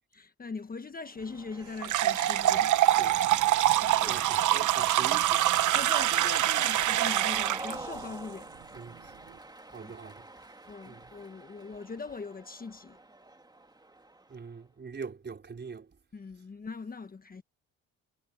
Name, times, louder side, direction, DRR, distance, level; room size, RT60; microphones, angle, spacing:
voice 1, 0.1-2.7 3.5-4.2 5.7-8.5 9.8-9.9 10.7-13.0 16.1-17.4, left 4 dB, 30° left, 1.3 m, -41 dB
Cheering, 1.1-14.5, right 2 dB, 15° right, 2.5 m, -47 dB
sound 1, 1.8-7.7, right 13 dB, 75° right, 1.2 m, -25 dB
voice 2, 4.0-5.4 8.7-9.1 9.7-10.2 10.9-11.1 14.3-15.9, right 5 dB, 35° right, 5.3 m, -42 dB
cardioid pair, 90°, 30 cm